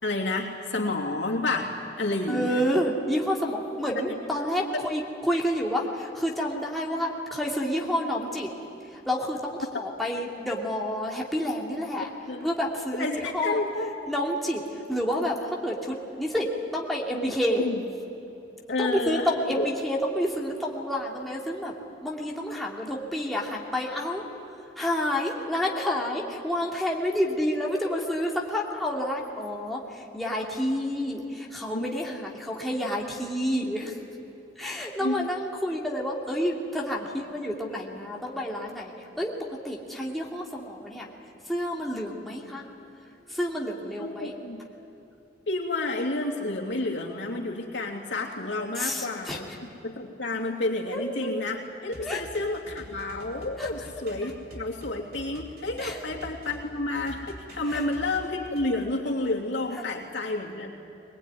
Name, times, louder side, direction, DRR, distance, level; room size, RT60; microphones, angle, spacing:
voice 1, 0.0-2.6 4.7-4.8 12.3-12.4 13.0-13.9 17.6-17.8 18.7-19.6 31.7-31.8 35.0-35.2 44.0-44.6 45.5-60.7, left 2 dB, 75° left, -1 dB, 3.1 m, -30 dB
voice 2, 2.3-8.5 8.9-12.1 12.4-13.6 14.1-17.7 18.8-21.7 22.0-24.2 24.8-34.0 34.6-41.1 41.5-42.6 43.3-44.3 48.8-49.6 50.9-51.3 52.0-52.2 53.6-53.7 55.8-56.0 57.7-57.9 59.7-59.8, equal, ahead, -3 dB, 2.6 m, -29 dB
sound 1, 51.9-56.6 56.9-58.7, right 1 dB, 55° right, 3.7 m, -45 dB
22.5 x 20.5 x 9.6 m, 3.0 s
head